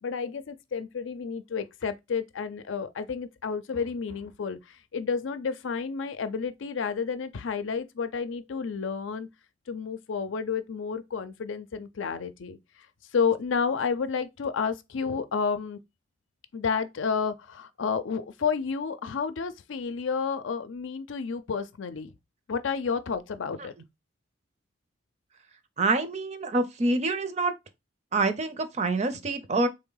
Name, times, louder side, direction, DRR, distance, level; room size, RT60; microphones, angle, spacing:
voice 1, 0.0-9.3 9.7-12.6 13.1-15.8 16.5-22.1 22.5-23.7, left 5 dB, 85° left, 0.5 m, -31 dB
voice 2, 25.8-27.5 28.1-29.7, right 2 dB, 35° right, 0.5 m, -26 dB
3.6 x 3.2 x 3.8 m
head